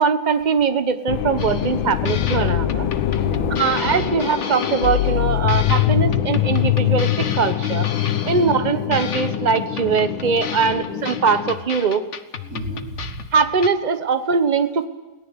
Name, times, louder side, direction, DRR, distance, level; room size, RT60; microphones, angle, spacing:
voice 1, 0.0-2.9 3.6-7.9 8.2-12.0 13.3-14.8, right 5 dB, 25° right, 10 dB, 1.1 m, -21 dB
sound 1, 1.1-11.5, left 12 dB, 75° left, 1.7 m, -23 dB
sound 2, 1.4-1.8 2.0-5.2 5.5-8.6 8.9-13.7, left 6 dB, 40° left, 1.3 m, -34 dB
voice 2, 3.2-4.1 8.3-8.6 10.6-10.7 12.4-13.2, equal, 45° right, 0 dB, 5.5 m, -32 dB
29.0 x 18.0 x 8.2 m, 1.2 s
omnidirectional pair, 2.1 m